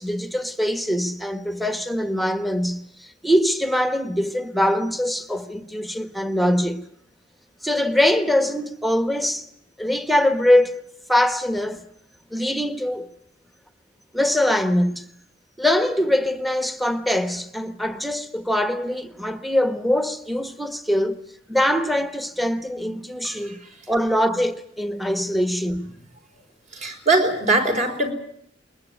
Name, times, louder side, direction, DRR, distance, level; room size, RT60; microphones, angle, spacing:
voice 1, 0.0-6.8 7.6-9.5 9.8-10.8 11.1-11.8 12.3-13.1 14.1-15.0 15.6-23.6 23.9-25.9, left 1 dB, ahead, 1.3 m, -23 dB
voice 2, 23.2-23.5 26.7-28.1, right 2 dB, 40° right, 4.7 m, -21 dB
21.5 x 21.0 x 9.4 m
head